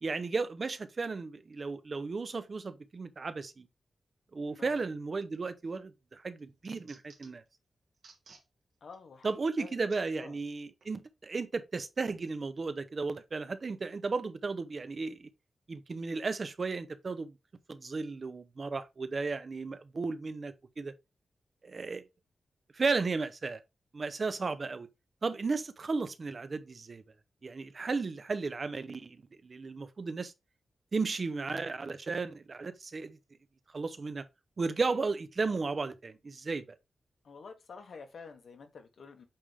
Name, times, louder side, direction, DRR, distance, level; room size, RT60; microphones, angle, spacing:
voice 1, 0.0-3.7 4.3-7.4 9.2-15.3 15.7-17.3 17.7-20.9 21.6-22.0 22.7-23.6 23.9-24.9 25.2-27.0 27.4-29.2 29.4-30.3 30.9-33.2 33.7-34.2 34.6-36.6, right 4 dB, 45° right, 0.7 m, -34 dB
voice 2, 4.5-4.9 8.8-9.7 10.2-10.4 37.2-39.2, left 5 dB, 70° left, 1.4 m, -49 dB
sound 1, 5.4-5.8 6.2-7.5 7.9-8.5 8.9-9.0 9.9-10.0 10.8-10.9, right 4 dB, 80° right, 2.3 m, -58 dB
8.5 x 3.6 x 3.4 m
wide cardioid pair, 115°, 0 cm